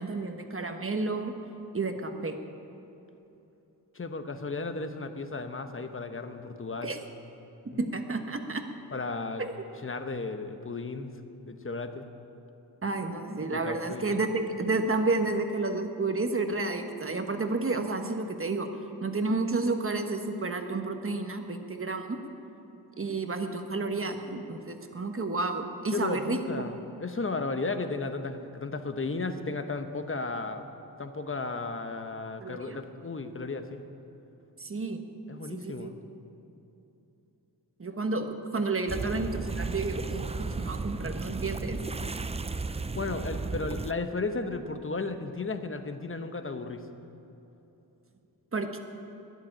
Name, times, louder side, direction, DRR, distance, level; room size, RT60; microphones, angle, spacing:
voice 1, 0.0-1.3 1.7-2.3 6.8-7.0 7.8-8.6 9.4-9.5 12.8-18.7 19.0-22.2 23.0-26.7 32.4-32.8 34.6-35.0 35.5-35.9 37.8-41.8 48.5-48.8, right 3 dB, 30° right, 5 dB, 1.3 m, -31 dB
voice 2, 3.9-6.9 8.9-9.5 9.8-11.1 11.5-12.0 13.5-14.1 25.9-30.7 31.0-33.8 35.3-35.9 42.9-46.8, left 3 dB, 30° left, 8 dB, 1.0 m, -34 dB
sound 1, 38.9-43.9, right 3 dB, 15° right, 0.4 m, -34 dB
13.5 x 10.5 x 8.7 m, 3.0 s
wide cardioid pair, 90°, 40 cm